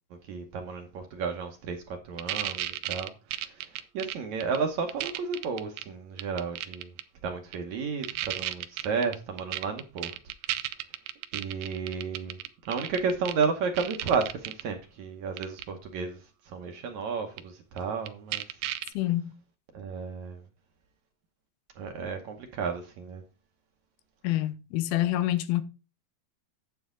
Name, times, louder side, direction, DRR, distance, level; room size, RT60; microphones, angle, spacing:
voice 1, 0.3-3.1 3.4-3.7 3.9-6.9 7.2-10.1 11.3-12.4 12.7-16.2 16.5-18.4 19.7-20.4 21.8-23.2, right 5 dB, 65° right, 2.0 m, -32 dB
sound 1, 2.2-4.6 4.9-5.8 6.2-7.0 7.5-7.6 8.0-13.5 13.8-14.6 15.4-15.6 17.4-17.5 17.8-17.9 18.1-18.9, right 14 dB, 80° right, 2.5 m, -33 dB
voice 2, 18.9-19.3 24.2-25.6, left 14 dB, 90° left, 2.7 m, -27 dB
9.5 x 7.7 x 3.8 m
omnidirectional pair, 4.3 m